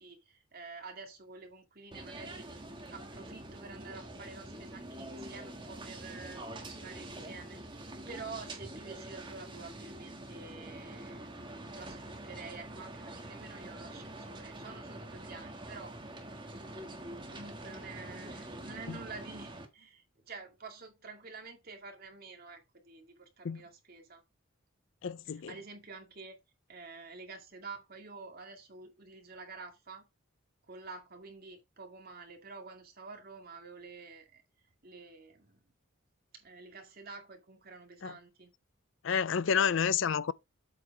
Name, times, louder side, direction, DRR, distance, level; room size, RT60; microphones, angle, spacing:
voice 1, 0.0-2.6 2.9-11.3 11.7-16.0 17.3-24.2 25.3-26.4 26.7-30.0 30.7-34.4 34.8-35.6 36.3-38.5, right 4 dB, 45° right, 2.2 m, -49 dB
sound 1, 1.9-19.6, right 1 dB, 20° right, 1.6 m, -45 dB
voice 2, 25.0-25.5 38.0-38.1 39.0-40.3, left 7 dB, 60° left, 0.4 m, -29 dB
8.1 x 4.6 x 4.8 m
head